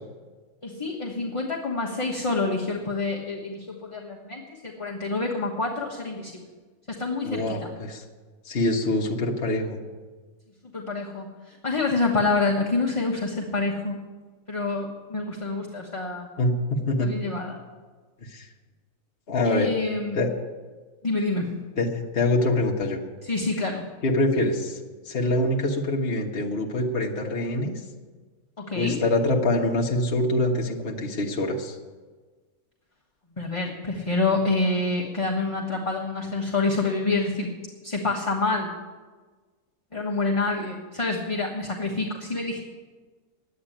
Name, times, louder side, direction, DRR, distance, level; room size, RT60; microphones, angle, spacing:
voice 1, 0.6-6.4 6.9-7.7 10.7-14.0 14.5-16.3 17.0-17.6 19.4-20.2 21.0-21.5 23.2-23.8 28.6-29.0 33.4-37.5 37.8-38.7 39.9-42.6, left 3 dB, 25° left, -3 dB, 1.3 m, -27 dB
voice 2, 7.2-8.0 8.4-9.8 16.4-17.1 18.2-18.5 19.3-19.7 20.1-20.3 21.8-23.0 24.0-24.8 25.0-27.7 28.7-31.8, left 2 dB, 45° left, -1 dB, 1.4 m, -25 dB
10.0 x 8.8 x 10.0 m, 1.4 s
omnidirectional pair, 1.5 m